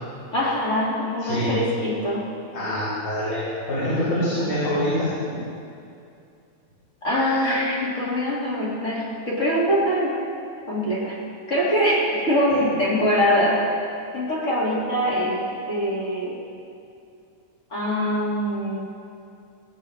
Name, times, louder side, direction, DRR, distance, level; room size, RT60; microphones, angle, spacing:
voice 1, 0.3-2.3 7.0-10.2 10.7-11.2 11.5-13.7 14.1-16.4 17.7-18.9, equal, 30° left, -6 dB, 1.7 m, -23 dB
voice 2, 1.2-1.5 2.5-5.4, left 1 dB, 70° left, -12 dB, 4.3 m, -25 dB
18.0 x 8.9 x 2.5 m, 2.5 s
omnidirectional pair, 3.5 m